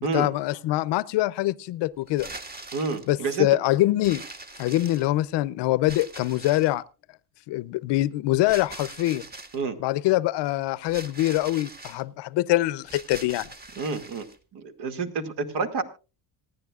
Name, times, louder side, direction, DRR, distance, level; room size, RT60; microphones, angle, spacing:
voice 1, 0.1-2.3 3.1-4.2 4.6-6.8 7.5-9.2 9.8-13.5, left 16 dB, 65° left, 0.7 m, -24 dB
sound 1, 2.1-3.1 4.0-5.3 5.9-6.8 8.5-9.6 10.9-12.0 12.8-14.4, right 2 dB, 20° right, 1.7 m, -42 dB
voice 2, 2.7-3.5 9.5-9.8 13.8-14.3 14.5-15.8, right 4 dB, 60° right, 2.3 m, -29 dB
26.0 x 10.0 x 2.4 m
cardioid pair, 100°, 45 cm